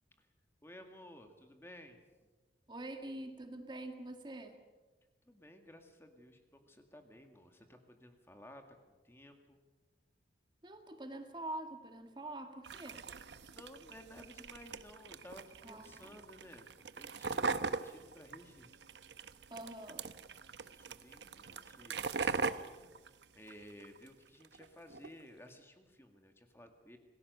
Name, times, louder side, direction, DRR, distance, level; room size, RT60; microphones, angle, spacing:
voice 1, 0.6-2.0 5.3-8.6 9.0-9.6 13.4-16.7 16.9-18.7 20.6-22.4 23.3-27.0, left 1 dB, 15° left, 5 dB, 2.0 m, -56 dB
voice 2, 2.7-4.5 10.6-13.0 15.6-16.2 19.5-20.0, right 1 dB, 25° right, 5 dB, 1.9 m, -45 dB
sound 1, 12.6-24.1 24.4-25.1, right 4 dB, 85° right, 0.9 m, -41 dB
27.0 x 19.5 x 6.8 m, 1.2 s
head